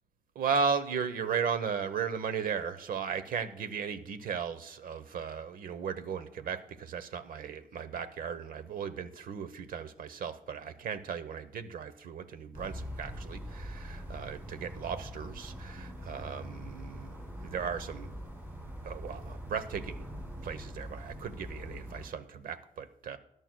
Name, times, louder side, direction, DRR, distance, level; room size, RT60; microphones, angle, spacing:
voice 1, 0.3-17.2 17.4-18.1 18.8-20.0 20.4-23.2, right 6 dB, 80° right, 11 dB, 1.0 m, -36 dB
sound 1, 12.5-22.1, equal, 15° right, 4.2 m, -43 dB
20.0 x 11.0 x 2.3 m, 0.76 s
wide cardioid pair, 150°, 15 cm